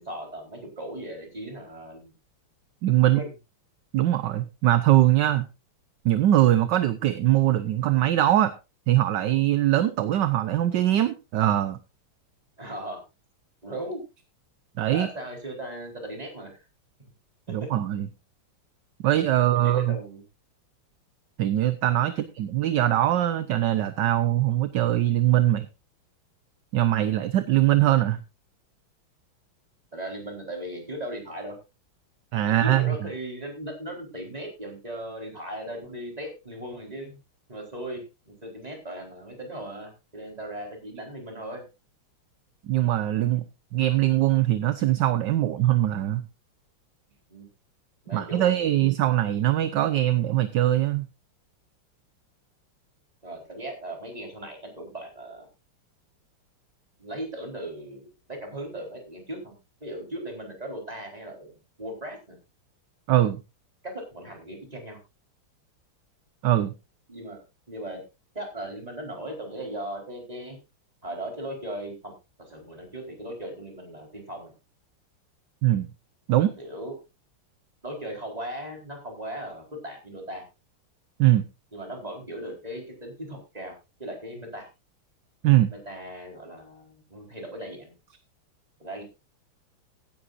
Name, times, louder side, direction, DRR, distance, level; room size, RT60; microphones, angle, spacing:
voice 1, 0.0-2.1 3.0-3.3 12.6-13.0 13.6-14.0 14.9-16.6 19.5-20.2 22.1-22.2 29.9-31.5 32.4-37.2 37.5-41.6 47.3-47.5 48.0-48.8 53.2-55.5 57.0-59.6 59.8-62.4 63.8-65.0 67.1-67.4 67.7-68.0 68.3-70.6 71.0-72.1 72.5-74.5 76.6-77.0 77.8-80.4 81.7-83.7 84.0-84.7 85.8-87.9 88.8-89.0, right 1 dB, 15° right, 2 dB, 4.4 m, -37 dB
voice 2, 2.8-3.2 3.9-5.5 6.0-8.5 8.9-11.8 14.8-15.1 17.5-18.1 19.0-20.0 21.4-25.7 26.7-28.2 32.3-33.0 42.6-43.4 43.7-46.2 48.1-51.1 63.1-63.4 66.4-66.7 75.6-75.9 76.3-76.5 81.2-81.4 85.4-85.7, right 13 dB, 65° right, 13 dB, 1.3 m, -22 dB
16.0 x 11.5 x 2.6 m, 0.27 s
omnidirectional pair, 2.4 m